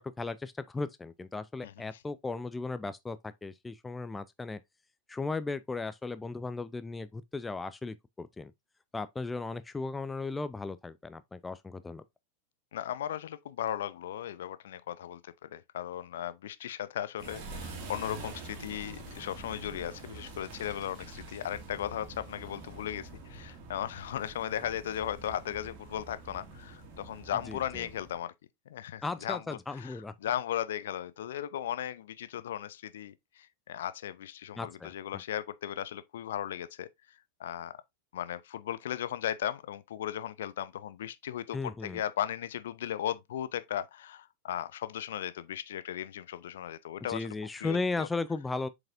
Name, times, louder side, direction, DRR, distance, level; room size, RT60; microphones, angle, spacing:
voice 1, 0.0-4.6 5.1-8.5 8.9-12.0 27.5-27.9 29.0-30.1 34.6-35.2 41.5-42.0 47.1-48.7, left 3 dB, 10° left, 0.5 m, -36 dB
voice 2, 12.7-28.3 28.7-36.9 37.4-37.7 38.1-47.3 47.6-48.1, left 11 dB, 60° left, 0.6 m, -37 dB
sound 1, 17.2-28.2, right 3 dB, 45° right, 2.1 m, -46 dB
7.4 x 4.9 x 2.6 m
figure-of-eight pair, 90°, 0 cm